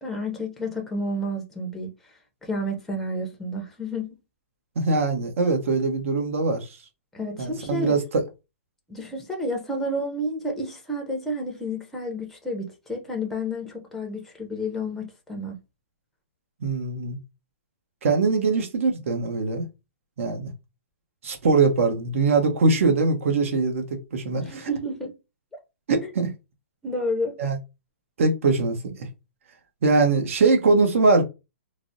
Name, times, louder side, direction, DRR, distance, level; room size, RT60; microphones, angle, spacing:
voice 1, 0.0-1.9 2.4-4.2 7.1-7.9 8.9-15.6 20.2-20.4 24.4-25.2 26.8-27.3, equal, 5° left, 0.6 m, -30 dB
voice 2, 4.8-6.7 7.4-8.2 16.6-17.2 18.0-19.6 20.2-20.5 21.2-24.7 25.9-26.3 27.4-27.6 28.2-29.1 29.8-31.2, right 3 dB, 65° right, 0.9 m, -22 dB
3.2 x 2.0 x 2.6 m
hypercardioid pair, 160°, 8 cm